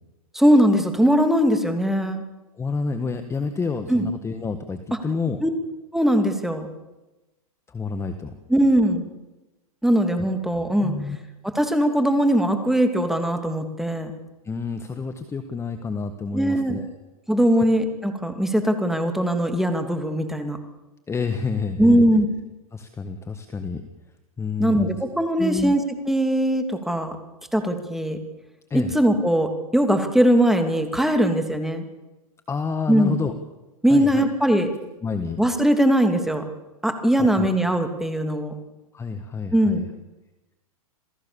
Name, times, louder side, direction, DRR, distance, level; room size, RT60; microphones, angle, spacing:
voice 1, 0.3-2.2 3.9-4.1 5.4-5.5 5.9-6.7 8.5-9.0 9.8-10.9 11.4-14.1 16.3-16.8 17.3-20.6 21.8-22.3 24.6-25.8 26.1-27.2 27.5-28.2 28.7-31.8 32.9-33.2 33.8-34.7 35.4-36.4 36.8-38.5 39.5-39.8, equal, ahead, 6 dB, 2.8 m, -20 dB
voice 2, 2.6-5.4 7.7-8.3 10.8-11.2 14.4-17.0 21.1-22.0 22.7-23.8 24.4-24.9 25.4-25.7 28.7-28.9 32.5-33.3 33.9-34.6 35.0-35.4 37.2-37.5 38.9-39.9, left 4 dB, 15° left, 8 dB, 1.5 m, -29 dB
28.0 x 17.5 x 7.1 m, 1.1 s
hypercardioid pair, 120°, 19 cm